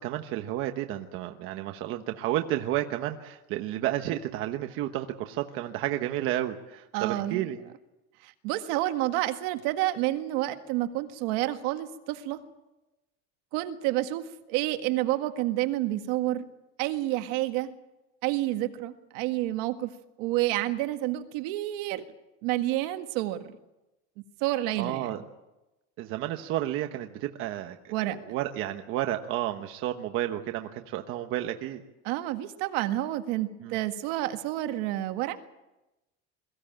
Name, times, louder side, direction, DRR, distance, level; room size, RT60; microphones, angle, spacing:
voice 1, 0.0-7.6 24.8-25.2 26.0-31.8 33.6-33.8, right 13 dB, 45° right, 6 dB, 1.1 m, -31 dB
voice 2, 6.9-7.5 8.2-12.4 13.5-16.5 16.8-17.7 18.2-19.9 20.2-22.1 22.4-23.5 24.4-25.1 27.9-28.2 32.0-35.4, right 15 dB, 70° right, 8 dB, 1.8 m, -29 dB
22.5 x 16.0 x 8.9 m, 0.99 s
cardioid pair, 175°, 30 cm